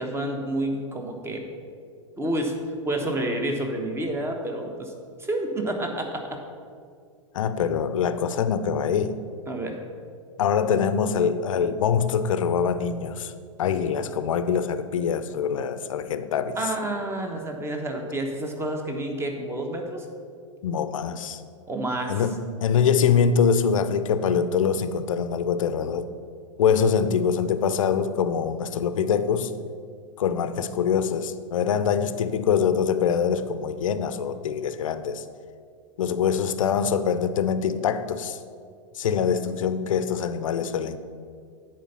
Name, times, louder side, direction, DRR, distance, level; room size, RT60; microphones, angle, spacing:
voice 1, 0.0-1.4 2.2-2.6 2.8-4.9 5.2-6.4 9.5-9.8 16.6-20.0 21.7-22.2, right 1 dB, 15° right, 3 dB, 1.2 m, -29 dB
voice 2, 7.3-9.2 10.4-13.3 13.6-16.6 20.6-21.4 22.1-26.0 26.6-29.5 30.2-35.2 36.0-38.4 39.0-41.0, left 7 dB, 70° left, 12 dB, 0.6 m, -24 dB
10.0 x 4.5 x 5.7 m, 2.2 s
hypercardioid pair, 100°, 17 cm